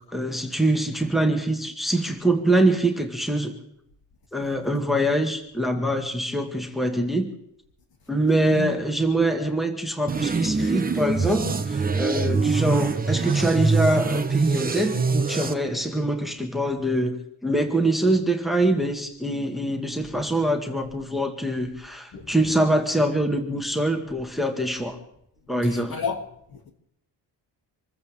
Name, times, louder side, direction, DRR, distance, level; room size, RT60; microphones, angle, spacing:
voice 1, 0.1-3.5 4.3-7.3 8.1-25.0 25.5-26.0, right 1 dB, ahead, 1.8 m, -24 dB
sound 1, 10.1-15.5, right 4 dB, 20° right, 1.0 m, -24 dB
voice 2, 22.1-22.4 25.7-26.2 26.5-26.7, left 6 dB, 60° left, 2.7 m, -31 dB
26.5 x 15.0 x 3.6 m
wide cardioid pair, 145°, 41 cm